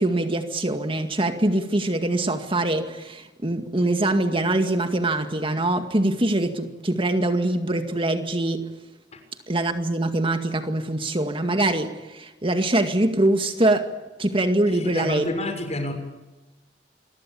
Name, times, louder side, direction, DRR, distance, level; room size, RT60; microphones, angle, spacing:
voice 1, 0.0-8.7 9.5-13.9 14.2-15.2, right 1 dB, 30° right, 7 dB, 2.1 m, -23 dB
voice 2, 14.7-15.9, left 1 dB, 40° left, 5 dB, 6.7 m, -29 dB
28.0 x 22.5 x 8.7 m, 1.1 s
head